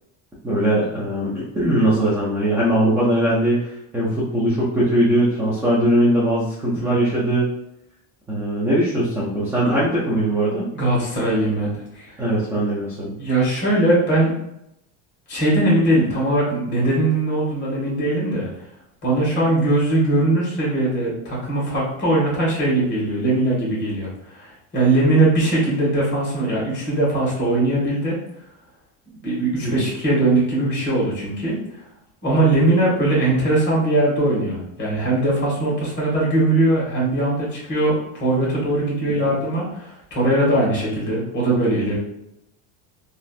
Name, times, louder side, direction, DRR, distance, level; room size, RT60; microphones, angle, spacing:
voice 1, 0.4-3.6 3.9-7.5 8.3-10.7 12.2-13.1 29.6-29.9, right 1 dB, 5° right, -8 dB, 0.3 m, -20 dB
voice 2, 10.7-12.1 13.2-14.3 15.3-18.5 19.0-28.2 29.2-31.6 32.2-42.0, right 2 dB, 30° left, -5 dB, 1.4 m, -20 dB
3.2 x 2.5 x 2.4 m, 0.79 s
cardioid pair, 155°, 39 cm